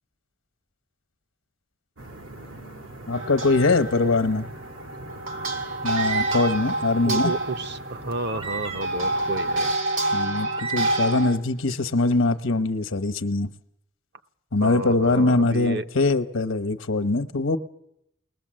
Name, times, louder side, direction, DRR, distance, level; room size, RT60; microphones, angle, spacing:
sound 1, 2.0-9.7, right 1 dB, 90° right, 2.4 m, -42 dB
voice 1, 3.1-4.5 5.8-7.3 10.1-13.5 14.5-17.6, left 2 dB, 80° left, 10 dB, 1.0 m, -22 dB
sound 2, 3.1-11.4, right 2 dB, 75° right, 2.6 m, -28 dB
sound 3, 5.8-6.7 7.2-7.3 8.3-9.1 9.9-10.0 10.3-11.3, right 7 dB, 30° right, 0.7 m, -34 dB
voice 2, 7.0-9.7 14.6-15.8, right 2 dB, 55° right, 8 dB, 0.8 m, -31 dB
20.5 x 20.5 x 7.7 m, 0.78 s
head